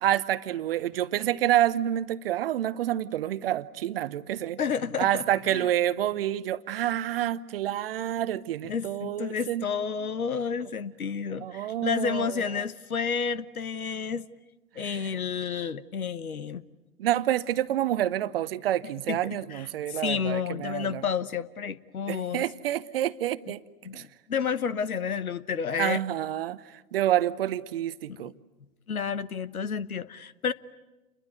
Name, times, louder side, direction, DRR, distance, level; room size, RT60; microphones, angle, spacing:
voice 1, 0.0-4.6 5.0-9.6 11.4-12.6 14.8-15.1 17.0-21.0 22.1-23.6 23.9-24.0 25.8-26.6 26.9-28.3, right 12 dB, 40° right, 0.9 m, -28 dB
voice 2, 4.6-5.7 8.6-14.2 14.8-16.6 19.1-22.4 23.8-26.0 28.2-28.3 28.9-30.5, left 6 dB, 70° left, 1.2 m, -31 dB
29.0 x 22.5 x 9.2 m
figure-of-eight pair, 115°, 44 cm